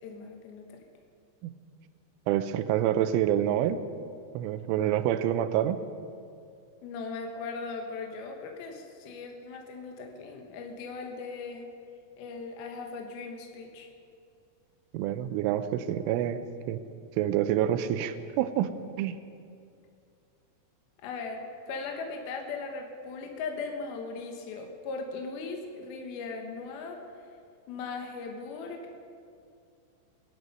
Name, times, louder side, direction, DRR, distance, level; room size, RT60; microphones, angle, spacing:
voice 1, 0.0-0.7 6.8-11.7 12.2-13.9 21.0-27.0 27.7-29.0, left 4 dB, 65° left, 2 dB, 2.7 m, -38 dB
voice 2, 2.3-3.8 4.3-5.8 14.9-16.4 16.7-16.8 17.2-19.2, right 11 dB, 85° right, 11 dB, 3.2 m, -27 dB
22.0 x 11.0 x 5.3 m, 2.4 s
omnidirectional pair, 5.6 m